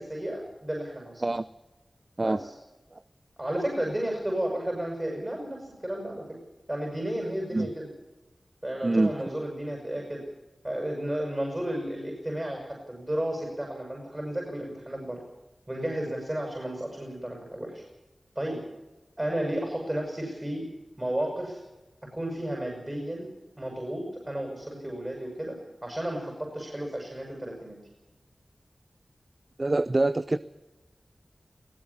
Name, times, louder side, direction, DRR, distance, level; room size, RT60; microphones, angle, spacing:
voice 1, 0.0-1.3 2.2-2.5 3.4-6.2 6.7-7.9 8.6-10.2 10.6-15.2 15.7-17.8 18.4-18.6 19.2-20.7 21.0-21.6 22.1-23.3 23.6-27.8, right 1 dB, 25° right, 0 dB, 7.2 m, -33 dB
voice 2, 29.6-30.4, right 2 dB, 45° right, 15 dB, 0.7 m, -24 dB
21.0 x 17.5 x 7.3 m, 1.1 s
cardioid pair, 40°, 0 cm